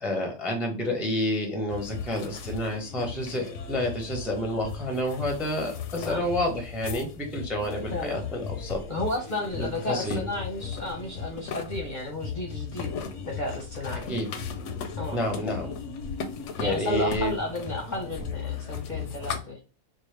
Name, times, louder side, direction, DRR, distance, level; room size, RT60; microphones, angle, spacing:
voice 1, 0.0-8.8 9.6-10.2 14.1-14.3 15.1-15.7 16.6-17.3, left 1 dB, ahead, 2 dB, 0.5 m, -29 dB
sound 1, 1.7-19.4, left 6 dB, 65° left, 0.8 m, -36 dB
voice 2, 8.9-12.9 13.2-14.1 15.0-15.2 16.6-19.6, left 1 dB, 45° left, -1 dB, 0.7 m, -32 dB
4.6 x 2.2 x 3.2 m, 0.33 s
omnidirectional pair, 1.5 m